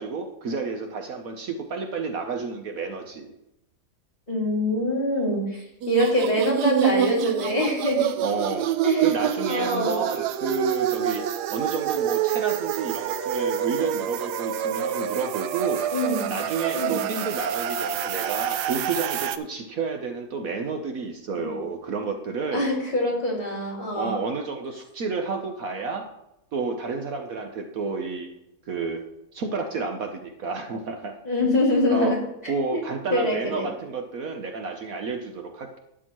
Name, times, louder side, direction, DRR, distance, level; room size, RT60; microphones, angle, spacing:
voice 1, 0.0-3.3 8.2-8.7 9.0-11.2 11.5-15.8 16.3-22.6 23.9-26.1 26.5-28.3 28.7-29.0 29.3-31.1 31.4-31.6 31.9-32.2 32.5-35.8, right 4 dB, 65° right, 4 dB, 1.2 m, -30 dB
voice 2, 4.3-8.2 8.8-9.1 9.4-10.0 15.9-16.3 16.7-17.0 21.3-21.6 22.5-24.2 31.2-32.2 32.7-32.8 33.1-33.7, left 1 dB, 25° left, -4 dB, 2.7 m, -24 dB
sound 1, 5.8-19.4, right 10 dB, 85° right, 1.2 m, -27 dB
12.0 x 9.0 x 3.0 m, 0.84 s
omnidirectional pair, 1.7 m